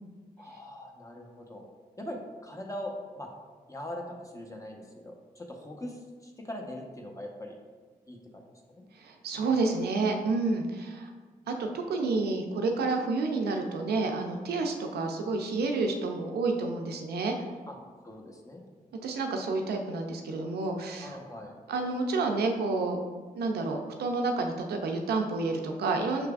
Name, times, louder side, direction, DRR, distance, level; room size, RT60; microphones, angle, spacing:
voice 1, 0.4-1.7 2.0-3.3 3.7-7.6 8.1-8.4 8.7-8.8 17.7-17.8 18.0-18.6 21.0-21.5, left 1 dB, 20° left, 1 dB, 0.9 m, -41 dB
voice 2, 8.9-11.1 11.5-17.3 19.0-21.2 21.7-23.0 23.3-26.3, right 3 dB, 85° right, 3 dB, 0.5 m, -29 dB
5.8 x 3.3 x 2.4 m, 1.4 s
supercardioid pair, 45°, 16 cm